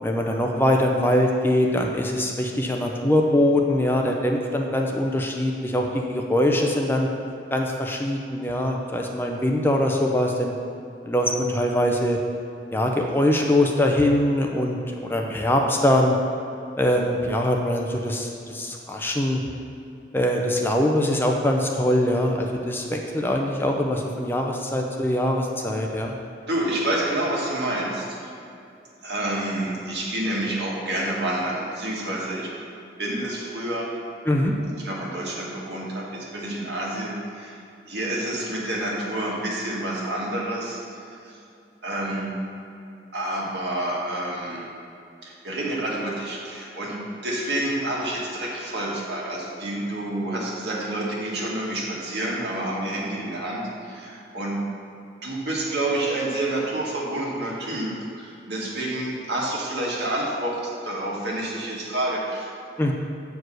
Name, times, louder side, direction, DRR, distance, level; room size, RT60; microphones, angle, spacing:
voice 1, 0.0-7.1 7.5-10.5 11.0-12.2 12.7-16.2 16.8-19.4 20.1-26.1 34.3-34.6 62.8-62.9, left 1 dB, 10° left, 1 dB, 0.5 m, -22 dB
voice 2, 26.5-28.3 29.0-32.5 33.0-33.9 34.8-37.6 37.9-41.4 41.8-42.3 43.1-44.7 45.2-54.6 55.2-62.5, right 1 dB, 75° right, -4 dB, 1.8 m, -28 dB
8.0 x 4.7 x 6.2 m, 2.6 s
head